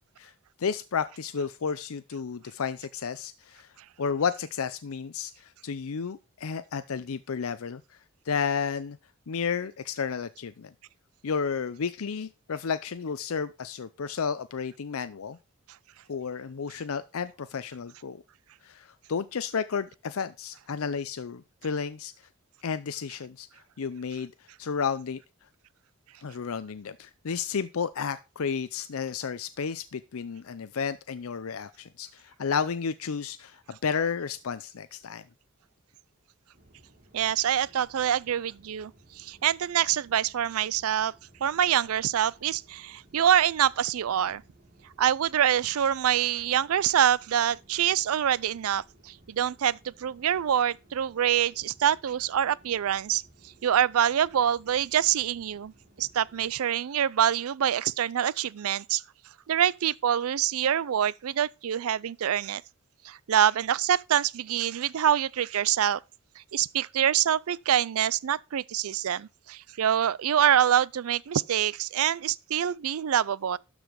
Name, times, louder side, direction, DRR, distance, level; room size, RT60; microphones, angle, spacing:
voice 1, 0.6-3.7 4.0-7.8 8.3-9.0 9.3-10.7 11.2-15.4 16.1-18.2 18.6-22.1 22.6-23.5 23.8-24.3 24.6-25.2 26.2-35.2, left 6 dB, 75° left, 0.5 m, -32 dB
sound 1, 36.5-56.5, right 1 dB, 40° right, 2.6 m, -59 dB
voice 2, 37.1-41.1 41.4-44.4 45.0-53.2 53.6-55.7 56.0-59.0 59.5-62.6 63.0-66.0 66.4-73.6, right 9 dB, 80° right, 0.4 m, -25 dB
12.5 x 5.0 x 5.1 m
head